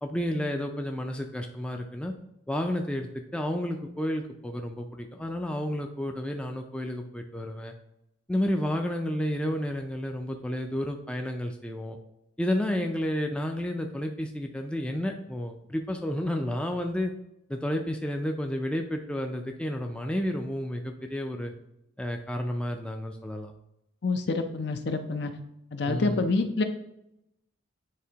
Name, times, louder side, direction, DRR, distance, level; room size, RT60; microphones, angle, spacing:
voice 1, 0.0-2.1 2.5-7.7 8.3-12.0 12.4-17.1 17.5-21.5 22.0-23.5 25.9-26.2, left 1 dB, 5° left, 3 dB, 0.3 m, -31 dB
voice 2, 24.0-25.3 25.7-26.6, left 3 dB, 60° left, 7 dB, 0.5 m, -27 dB
9.3 x 3.6 x 2.8 m, 0.84 s
head